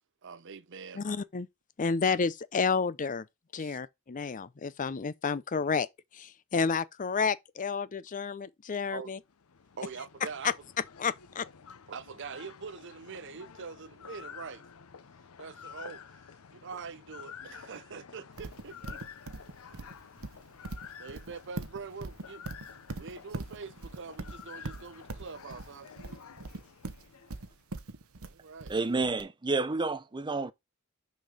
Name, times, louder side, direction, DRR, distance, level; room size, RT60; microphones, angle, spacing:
voice 1, 0.2-1.0 3.6-3.8 8.9-9.2 9.8-10.5 11.9-14.6 15.4-16.0 16.5-19.0 19.6-19.8 21.0-22.4 23.0-25.9 28.2-28.7, right 5 dB, 60° right, 0.6 m, -44 dB
voice 2, 0.9-1.5 1.8-3.3 3.5-5.9 6.1-9.2 10.4-10.5 11.0-11.5, left 5 dB, 35° left, 0.5 m, -30 dB
sound 1, 9.2-27.6, left 7 dB, 75° left, 0.6 m, -50 dB
Livestock farm animals working animals, 18.4-29.2, right 2 dB, 80° right, 1.0 m, -41 dB
voice 3, 28.7-30.5, right 3 dB, 20° right, 0.6 m, -30 dB
6.4 x 5.3 x 3.8 m
head